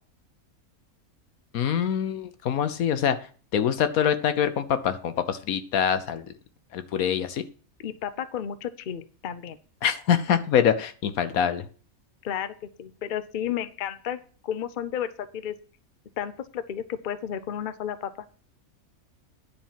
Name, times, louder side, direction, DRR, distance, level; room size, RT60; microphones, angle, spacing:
voice 1, 1.5-3.2 3.5-6.3 6.7-7.4 9.8-11.7, left 8 dB, 80° left, 11 dB, 1.3 m, -24 dB
voice 2, 7.8-9.6 12.2-15.5 16.2-18.3, left 9 dB, 50° left, 12 dB, 0.6 m, -32 dB
10.0 x 4.4 x 7.4 m, 0.41 s
omnidirectional pair, 1.5 m